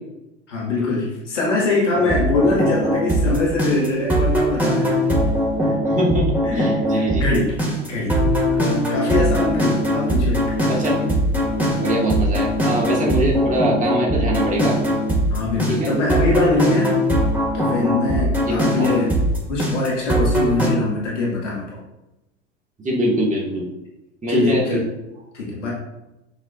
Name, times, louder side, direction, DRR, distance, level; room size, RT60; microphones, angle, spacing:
voice 1, 0.5-5.2 5.6-5.7 6.4-8.1 8.5-10.4 15.3-17.0 17.5-19.1 19.5-21.8 24.3-24.8 25.3-25.7, left 3 dB, 85° left, -5 dB, 2.3 m, -23 dB
sound 1, 1.9-20.7, equal, 5° right, 2.2 m, -21 dB
voice 2, 5.8-7.2 10.7-11.1 11.8-14.8 15.7-16.0 18.5-18.9 22.8-23.7 24.2-24.8, equal, 20° right, -3 dB, 2.3 m, -23 dB
7.9 x 5.2 x 2.6 m, 0.95 s
hypercardioid pair, 85°, 35 cm